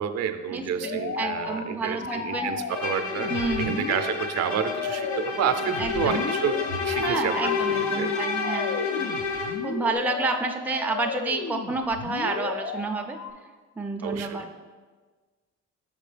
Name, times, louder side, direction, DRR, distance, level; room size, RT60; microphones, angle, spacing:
voice 1, 0.0-3.3 3.6-6.6 6.8-7.5 8.0-8.1 14.0-14.5, right 8 dB, 60° right, 9 dB, 0.5 m, -29 dB
voice 2, 0.5-2.5 3.3-3.8 5.8-6.2 7.0-8.7 9.6-13.2 13.8-14.5, right 3 dB, 5° right, 3 dB, 0.5 m, -29 dB
sound 1, 0.8-13.3, left 6 dB, 55° left, 0.5 m, -34 dB
Bowed string instrument, 2.7-9.7, left 4 dB, 75° left, 0.9 m, -29 dB
6.2 x 5.2 x 3.3 m, 1.4 s
cardioid pair, 90°, 30 cm